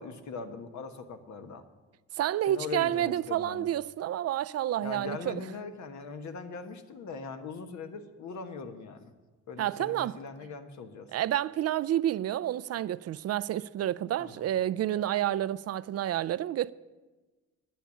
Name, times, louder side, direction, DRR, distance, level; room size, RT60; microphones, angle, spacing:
voice 1, 0.0-1.6 2.5-3.7 4.8-9.1 9.5-11.1 14.2-14.4, left 4 dB, 65° left, 1.4 m, -40 dB
voice 2, 2.1-5.4 9.6-10.2 11.1-16.7, right 12 dB, 55° right, 0.4 m, -29 dB
10.5 x 9.3 x 8.5 m
cardioid pair, 90°, 30 cm